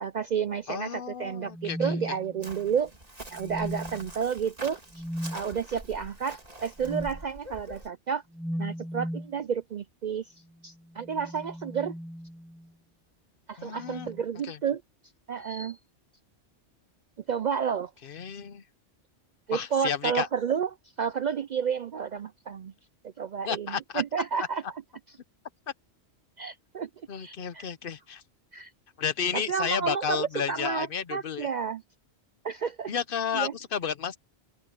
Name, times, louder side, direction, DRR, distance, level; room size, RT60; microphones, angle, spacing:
voice 1, 0.0-2.9 3.3-5.0 5.3-8.2 8.6-11.9 13.5-14.8 15.3-15.8 17.3-17.9 19.5-20.7 21.0-22.7 23.0-24.6 26.4-26.9 27.2-27.7 28.5-28.7 29.3-31.8 32.4-32.9 33.3-33.5, right 7 dB, 60° right, 0.5 m, -31 dB
voice 2, 0.7-1.9 13.6-14.1 14.4-14.6 18.0-18.6 19.5-20.3 23.4-24.0 24.4-24.5 27.1-28.2 29.0-31.5 32.9-34.2, left 7 dB, 55° left, 0.9 m, -32 dB
sound 1, 1.4-2.7 3.3-4.1 4.9-5.4 6.8-7.2 8.3-9.4 10.8-12.7 13.8-14.2 15.4-15.7, equal, ahead, 4.0 m, -37 dB
Chirp tweet, 2.4-7.9, right 1 dB, 35° right, 3.1 m, -45 dB
open air
omnidirectional pair, 1.2 m